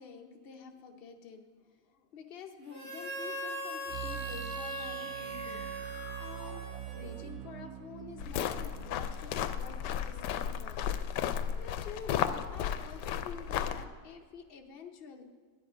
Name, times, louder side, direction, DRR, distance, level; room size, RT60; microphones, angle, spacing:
voice 1, 0.0-6.6 6.9-10.8 11.6-15.2, left 6 dB, 45° left, 5 dB, 0.8 m, -48 dB
Harmonica, 2.7-7.5, right 1 dB, 45° right, 2.3 m, -40 dB
sound 1, 3.9-10.7, right 12 dB, 70° right, 0.9 m, -45 dB
sound 2, 8.2-13.8, left 9 dB, 85° left, 1.2 m, -34 dB
9.8 x 9.6 x 5.0 m, 1.5 s
omnidirectional pair, 1.8 m